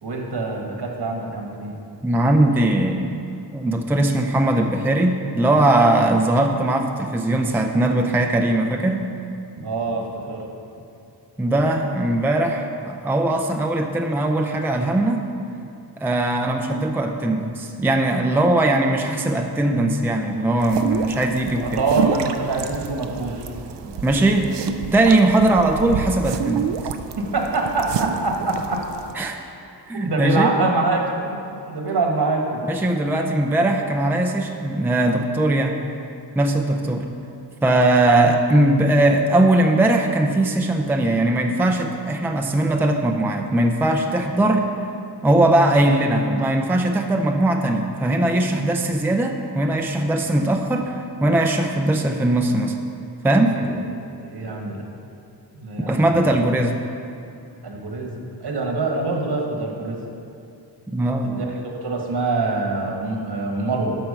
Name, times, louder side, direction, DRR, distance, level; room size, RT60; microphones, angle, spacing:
voice 1, 0.0-1.8 9.6-10.4 21.6-23.5 23.8-23.9 27.2-28.9 29.9-31.4 31.7-32.7 53.6-53.8 54.2-54.9 55.5-56.4 57.6-60.0 61.2-63.9, right 3 dB, 70° right, 1 dB, 1.6 m, -25 dB
voice 2, 2.0-3.2 3.5-9.1 11.4-15.3 16.0-21.8 24.0-24.5 24.9-26.7 29.2-29.4 29.9-30.5 32.7-35.9 36.4-37.1 37.6-44.7 45.2-52.8 53.2-53.6 55.9-56.8 60.9-61.4, right 1 dB, 5° right, 3 dB, 0.4 m, -20 dB
sound 1, 20.6-29.1, right 7 dB, 85° right, 0.6 m, -29 dB
11.5 x 4.5 x 6.7 m, 2.6 s
wide cardioid pair, 135°, 41 cm